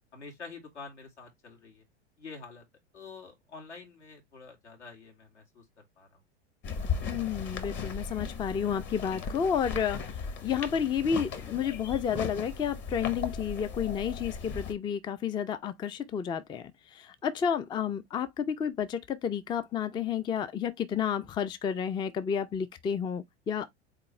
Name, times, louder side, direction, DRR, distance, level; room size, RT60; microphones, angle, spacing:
voice 1, 0.1-1.8 2.2-2.6 2.9-6.2, left 4 dB, 80° left, 2.4 m, -47 dB
sound 1, 6.6-14.7, left 5 dB, 35° left, 1.0 m, -37 dB
voice 2, 7.1-23.7, left 7 dB, 15° left, 0.4 m, -31 dB
4.0 x 3.6 x 3.1 m
figure-of-eight pair, 85°, 34 cm